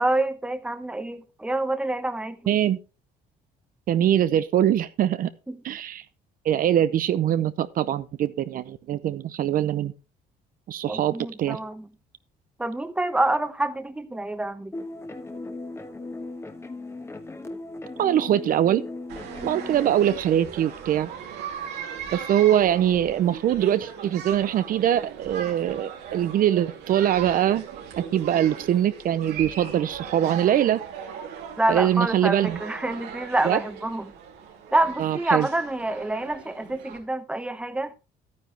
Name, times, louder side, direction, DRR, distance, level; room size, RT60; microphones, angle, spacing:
voice 1, 0.0-2.6 5.5-5.6 10.9-11.9 12.6-14.8 31.6-34.1 34.7-37.9, right 2 dB, 5° right, 1.0 m, -27 dB
voice 2, 2.5-2.8 3.9-5.3 5.6-6.0 6.4-9.9 10.7-11.6 18.0-18.8 19.4-21.1 22.1-27.7 28.0-30.8 31.7-32.6 33.4-33.6 35.0-35.5, right 11 dB, 55° right, 0.6 m, -23 dB
sound 1, 14.7-20.2, left 2 dB, 15° left, 1.2 m, -37 dB
sound 2, 19.1-37.0, right 7 dB, 85° right, 2.9 m, -38 dB
11.5 x 9.5 x 3.3 m
cardioid pair, 110°, 17 cm